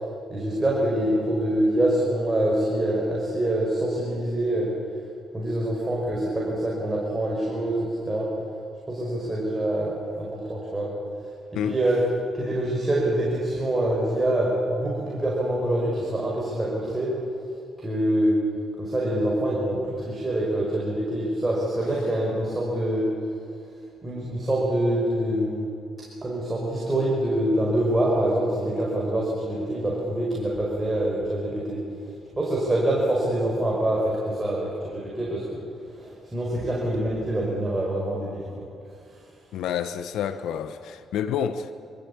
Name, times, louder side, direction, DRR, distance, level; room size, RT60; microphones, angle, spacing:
voice 1, 0.3-4.7 5.3-8.3 8.9-10.9 11.6-12.0 12.3-17.2 17.8-18.4 18.8-23.1 24.0-25.6 26.2-31.8 32.4-35.6 36.0-38.5, right 1 dB, 20° right, 5.4 m, -25 dB
voice 2, 39.5-41.7, left 8 dB, 85° left, 0.9 m, -28 dB
25.5 x 15.0 x 8.7 m
cardioid pair, 90°, 0 cm